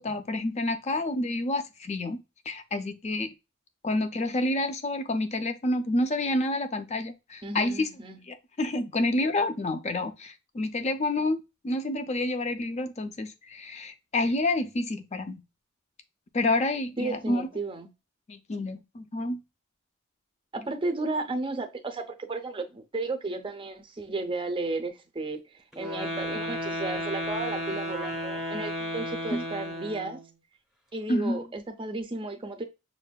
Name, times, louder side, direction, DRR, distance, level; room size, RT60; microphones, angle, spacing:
voice 1, 0.0-2.2 2.5-3.3 3.8-7.9 8.3-11.4 11.6-15.4 16.3-17.5 18.3-19.4 29.3-29.4 31.1-31.4, left 2 dB, 30° left, 0.5 m, -28 dB
voice 2, 7.4-8.2 17.0-17.9 20.5-30.2 30.9-32.6, right 2 dB, 25° right, 0.5 m, -34 dB
sound 1, 25.7-30.3, equal, ahead, 0.9 m, -33 dB
6.4 x 2.5 x 2.2 m
head